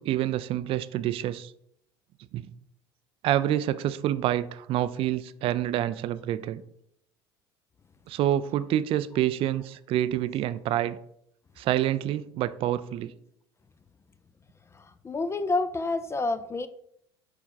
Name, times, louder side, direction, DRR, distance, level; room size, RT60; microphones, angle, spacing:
voice 1, 0.0-1.5 2.3-2.5 3.2-6.6 8.1-11.0 11.6-13.1, right 12 dB, 45° right, 0.4 m, -27 dB
voice 2, 14.7-16.7, left 3 dB, 20° left, 0.5 m, -29 dB
6.0 x 4.3 x 4.0 m
hypercardioid pair, 70°, 13 cm